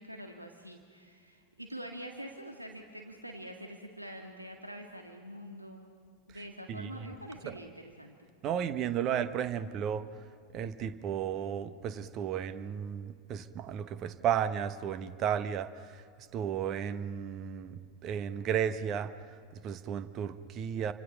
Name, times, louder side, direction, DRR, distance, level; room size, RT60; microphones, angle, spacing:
voice 1, 0.0-5.9 6.3-8.3, equal, 85° right, 3 dB, 1.9 m, -45 dB
voice 2, 6.7-7.1 7.4-7.5 8.4-10.1 10.5-16.0 16.3-19.1 19.5-20.9, right 8 dB, 35° right, 12 dB, 1.2 m, -34 dB
29.5 x 25.0 x 5.8 m, 2.3 s
figure-of-eight pair, 90°, 0 cm